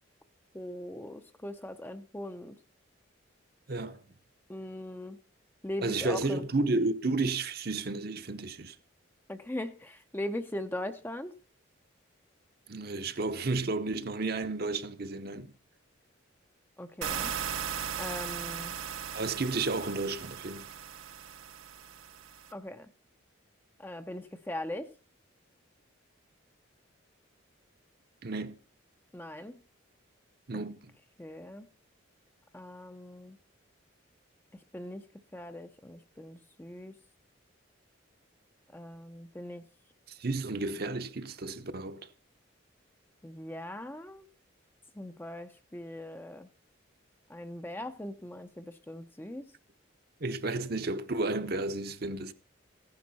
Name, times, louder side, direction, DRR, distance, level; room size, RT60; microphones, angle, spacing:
voice 1, 0.5-2.6 4.5-5.2 5.6-6.5 9.3-11.3 16.8-17.4 18.0-18.7 22.5-22.9 23.8-24.9 29.1-29.6 30.5-30.6 31.2-31.7 32.5-33.4 34.7-35.1 35.3-36.9 38.7-39.6 43.2-44.3 44.9-46.5 47.3-49.4, left 1 dB, 10° left, 0.6 m, -40 dB
voice 2, 3.7-4.0 5.8-8.8 12.7-15.5 19.1-20.7 28.2-28.6 30.5-30.9 40.1-42.1 50.2-52.3, right 3 dB, 50° right, 0.9 m, -32 dB
sound 1, 17.0-22.5, right 8 dB, 80° right, 0.9 m, -38 dB
15.0 x 10.5 x 4.1 m
head